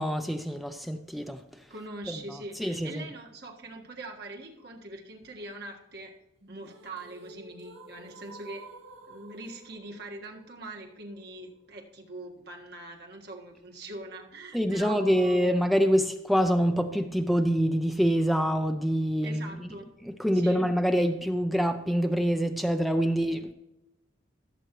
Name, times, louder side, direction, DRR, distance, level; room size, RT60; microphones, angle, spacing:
voice 1, 0.0-1.4 2.1-3.1 14.5-19.7 20.0-23.5, equal, ahead, 0.4 m, -26 dB
voice 2, 1.7-6.1 6.5-8.7 9.1-15.4 19.2-19.9 20.3-20.6, right 2 dB, 55° right, 1.6 m, -42 dB
sound 1, 6.4-12.4, right 2 dB, 85° right, 1.3 m, -51 dB
16.0 x 8.0 x 3.0 m
head